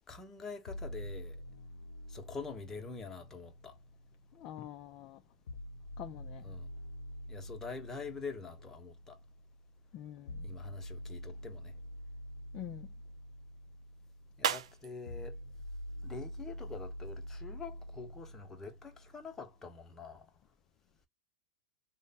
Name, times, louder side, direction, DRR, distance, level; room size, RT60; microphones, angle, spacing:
voice 1, 0.1-1.4 2.1-3.7 6.4-6.7 7.3-9.2 10.4-11.7 14.4-15.4 16.0-20.3, left 4 dB, 15° left, 0.9 m, -45 dB
sound 1, 0.7-4.7 5.5-19.5, equal, 90° left, 0.5 m, -46 dB
voice 2, 4.3-5.2 6.0-6.5 9.9-10.4 12.5-12.9, left 12 dB, 35° left, 0.4 m, -46 dB
sound 2, 11.0-16.8, right 9 dB, 80° right, 0.5 m, -43 dB
3.2 x 2.1 x 4.0 m
supercardioid pair, 140°, 3 cm